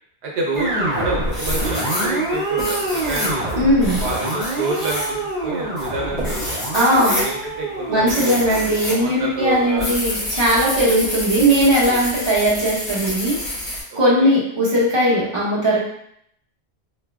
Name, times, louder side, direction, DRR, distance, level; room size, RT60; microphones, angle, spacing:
voice 1, 0.2-3.5 4.0-6.5 6.9-8.5 8.9-10.3 11.8-12.1 13.9-14.3, right 2 dB, 80° right, -2 dB, 1.0 m, -28 dB
sound 1, 0.5-9.8, right 1 dB, 40° right, 1.1 m, -26 dB
sound 2, 0.6-1.0 1.3-9.0 9.3-13.8, left 1 dB, 60° left, 1.5 m, -28 dB
voice 2, 3.6-4.0 6.7-7.2 7.9-13.4 13.9-15.8, equal, 25° right, -9 dB, 1.3 m, -18 dB
3.7 x 3.1 x 2.3 m, 0.71 s
omnidirectional pair, 1.1 m